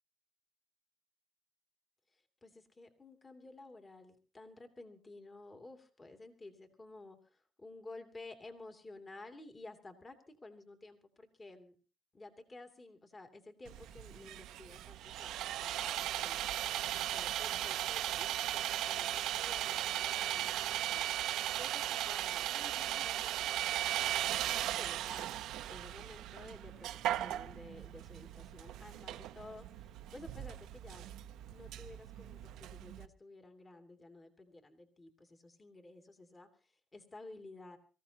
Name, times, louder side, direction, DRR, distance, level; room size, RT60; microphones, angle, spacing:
voice 1, 2.1-11.7 12.1-21.1 21.5-23.7 24.0-31.1 31.5-37.8, left 2 dB, 30° left, 5 dB, 2.8 m, -53 dB
Sawing, 13.7-33.1, right 13 dB, 90° right, 0.6 m, -37 dB
24.5 x 15.5 x 2.9 m, 0.38 s
cardioid pair, 90°, 0 cm